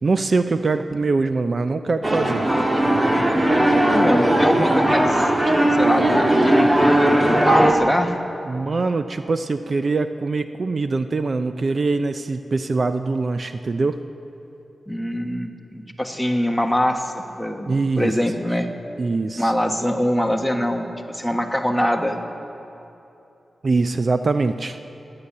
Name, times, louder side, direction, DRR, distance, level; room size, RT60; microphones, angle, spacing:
voice 1, 0.0-2.5 8.5-14.0 17.7-18.2 19.0-19.5 23.6-24.8, right 3 dB, 50° right, 9 dB, 0.5 m, -23 dB
sound 1, 2.0-7.7, right 1 dB, 30° right, 1.7 m, -18 dB
voice 2, 3.9-5.2 5.6-8.1 14.9-18.7 19.4-22.2, equal, 5° left, 3 dB, 1.3 m, -23 dB
16.0 x 9.9 x 8.7 m, 2.9 s
wide cardioid pair, 85°, 0 cm